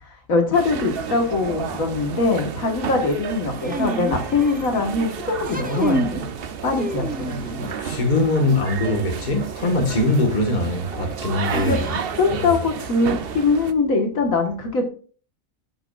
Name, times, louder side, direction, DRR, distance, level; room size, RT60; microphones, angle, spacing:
voice 1, 0.3-6.3 6.6-7.7 11.5-14.8, left 3 dB, 90° left, 2.0 m, -22 dB
sound 1, 0.5-13.7, right 7 dB, 50° right, 0.8 m, -32 dB
sound 2, 3.6-4.8 5.4-6.3 6.7-7.6 9.6-9.7 11.5-12.4, right 1 dB, 10° right, 0.4 m, -28 dB
voice 2, 7.8-11.8 12.3-12.6, left 2 dB, 35° left, 1.7 m, -22 dB
13.0 x 6.2 x 2.5 m
omnidirectional pair, 1.4 m